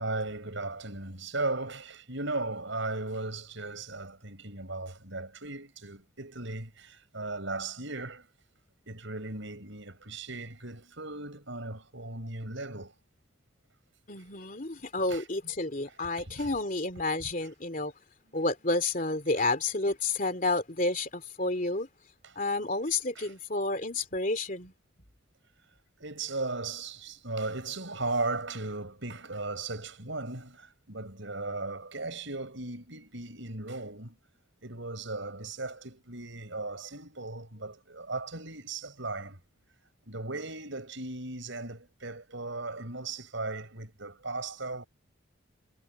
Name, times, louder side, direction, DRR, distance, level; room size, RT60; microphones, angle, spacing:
voice 1, 0.0-8.3 8.9-12.9 15.1-15.2 16.2-16.5 22.2-22.3 23.2-23.3 26.0-34.2 34.6-39.4 40.1-44.8, right 2 dB, 65° right, 5.4 m, -37 dB
voice 2, 14.1-17.9 18.3-21.9 22.3-24.7, left 2 dB, 40° left, 3.2 m, -30 dB
head